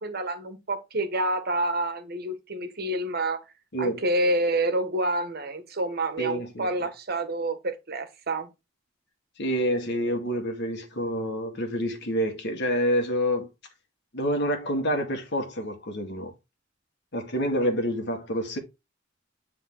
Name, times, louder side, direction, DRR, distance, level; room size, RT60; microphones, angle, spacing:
voice 1, 0.0-3.4 3.8-8.5, right 1 dB, 55° right, 1.5 m, -28 dB
voice 2, 6.2-6.7 9.4-13.5 14.1-16.3 17.1-18.6, equal, 60° left, 1.9 m, -27 dB
9.3 x 3.8 x 3.9 m
head